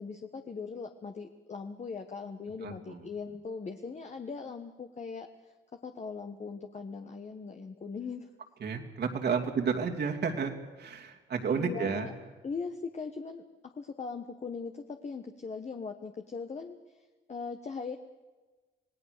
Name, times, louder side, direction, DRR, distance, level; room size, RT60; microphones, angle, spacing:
voice 1, 0.0-5.3 5.8-8.3 11.5-12.1 12.4-13.4 13.8-16.8 17.3-18.0, left 5 dB, 35° left, 6 dB, 1.4 m, -39 dB
voice 2, 2.6-3.1 8.6-12.1, right 6 dB, 55° right, 2 dB, 2.9 m, -32 dB
27.0 x 18.0 x 6.8 m, 1.2 s
cardioid pair, 90°, 20 cm